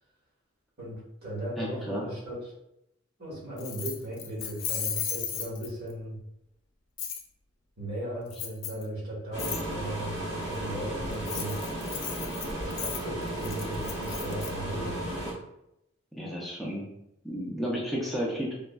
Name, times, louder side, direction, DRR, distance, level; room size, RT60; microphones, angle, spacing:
voice 1, 0.8-2.5 3.2-6.2 7.8-11.6 12.5-15.0, right 1 dB, 55° right, -7 dB, 1.3 m, -37 dB
voice 2, 1.6-2.0 16.1-16.8 17.2-18.5, equal, ahead, -5 dB, 0.4 m, -32 dB
Keys jangling, 3.6-5.9 7.0-7.2 8.3-8.8 9.4-9.6 11.1-14.5, left 8 dB, 90° left, 0.4 m, -35 dB
sound 1, 9.3-15.3, right 1 dB, 75° right, 1.4 m, -34 dB
3.3 x 2.1 x 2.2 m, 0.83 s
head